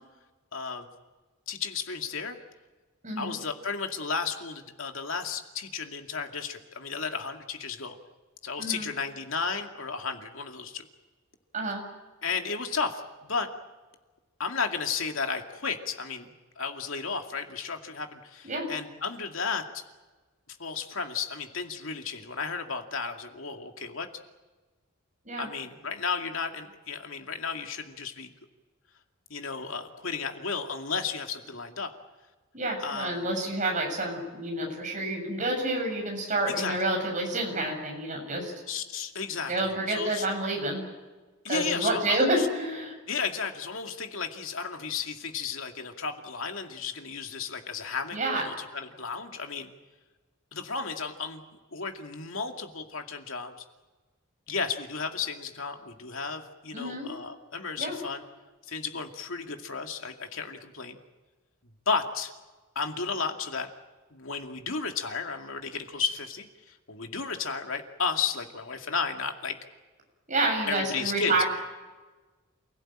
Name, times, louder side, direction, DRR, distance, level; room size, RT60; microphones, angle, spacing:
voice 1, 0.5-0.9 1.5-2.4 3.2-8.0 8.4-10.9 12.2-13.5 14.4-16.3 16.6-19.8 20.5-24.1 25.4-28.3 29.3-31.9 32.8-33.3 36.4-36.8 38.7-40.3 41.4-42.5 43.1-49.7 50.5-51.4 51.7-53.6 54.5-58.2 58.7-61.0 61.9-62.3 62.8-63.7 64.1-69.6 70.7-71.4, left 5 dB, 75° left, 4 dB, 2.4 m, -33 dB
voice 2, 3.0-3.3 8.6-8.9 11.5-11.8 18.4-18.7 25.3-25.5 32.5-38.5 39.5-40.8 41.5-42.9 48.1-48.4 56.7-57.1 57.8-58.0 70.3-71.4, right 2 dB, 40° right, 2 dB, 7.1 m, -29 dB
28.5 x 17.0 x 8.9 m, 1.3 s
head